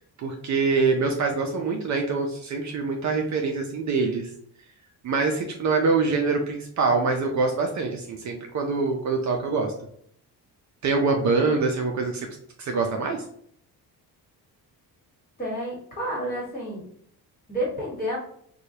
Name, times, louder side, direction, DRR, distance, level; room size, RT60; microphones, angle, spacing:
voice 1, 0.2-4.3 5.0-9.7 10.8-12.3 12.6-13.2, right 4 dB, 45° right, 2 dB, 0.5 m, -24 dB
voice 2, 15.4-16.8 17.5-18.2, equal, 20° left, -4 dB, 1.4 m, -30 dB
4.7 x 2.3 x 2.7 m, 0.65 s
cardioid pair, 175°, 39 cm